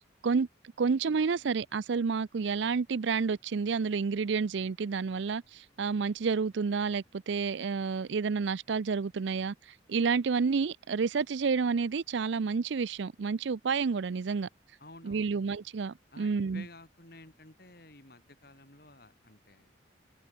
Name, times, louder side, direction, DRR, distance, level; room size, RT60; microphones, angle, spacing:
voice 1, 0.8-9.5 9.9-14.5 15.0-16.7, right 5 dB, 75° right, 0.5 m, -30 dB
voice 2, 14.8-15.4 16.1-19.7, left 2 dB, 50° left, 4.5 m, -53 dB
open air
head